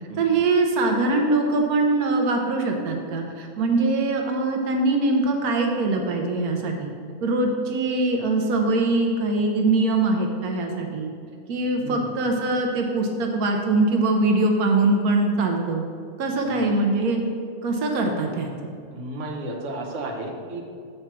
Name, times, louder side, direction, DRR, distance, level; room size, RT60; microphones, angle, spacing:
voice 1, 0.2-6.9 7.2-11.1 11.5-15.9 16.2-17.2 17.6-18.7, right 2 dB, 85° right, 2 dB, 1.3 m, -22 dB
voice 2, 18.9-20.6, right 2 dB, 55° right, 0 dB, 1.3 m, -32 dB
8.0 x 4.4 x 6.0 m, 2.4 s
omnidirectional pair, 1.5 m